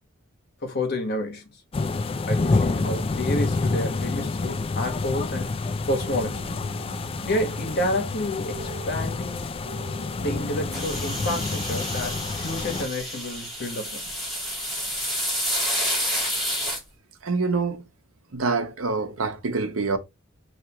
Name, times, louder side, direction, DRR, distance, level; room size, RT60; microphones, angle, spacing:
voice 1, 0.6-1.4 2.3-5.5 5.8-6.5 7.2-9.5 10.2-14.1, left 1 dB, 50° left, 1.4 m, -29 dB
sound 1, 1.7-12.9, left 3 dB, 30° left, 0.3 m, -28 dB
sound 2, 5.7-11.4, right 3 dB, 50° right, 0.8 m, -42 dB
sound 3, 10.7-16.8, equal, ahead, 2.9 m, -29 dB
voice 2, 17.2-17.9 18.3-20.0, right 4 dB, 85° right, 0.9 m, -26 dB
5.8 x 3.0 x 3.0 m
head